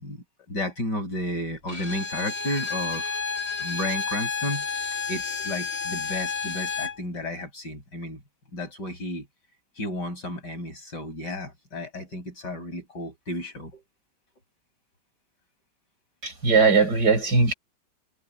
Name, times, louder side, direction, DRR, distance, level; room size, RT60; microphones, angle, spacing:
voice 1, 0.0-3.2 3.6-4.6 5.1-8.2 8.5-9.3 9.8-13.8, left 1 dB, 70° left, 8.7 m, -33 dB
Bowed string instrument, 1.7-7.0, left 5 dB, 35° left, 2.6 m, -31 dB
voice 2, 16.2-17.5, right 4 dB, 65° right, 7.1 m, -19 dB
omnidirectional pair, 1.9 m